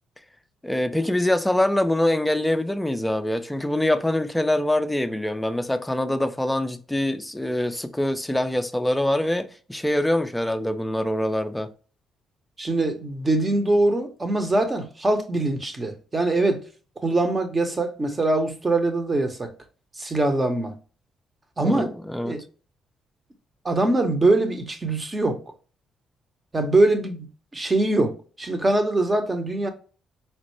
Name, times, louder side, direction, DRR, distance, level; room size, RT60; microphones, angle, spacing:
voice 1, 0.6-11.7 21.6-22.4, left 1 dB, 5° left, 0.4 m, -24 dB
voice 2, 12.6-16.6 17.0-19.5 20.0-20.7 21.6-21.9 22.2-22.4 23.6-25.4 26.5-27.3 27.5-29.7, right 2 dB, 25° right, 0.7 m, -23 dB
4.3 x 2.0 x 3.1 m
cardioid pair, 90°, 0 cm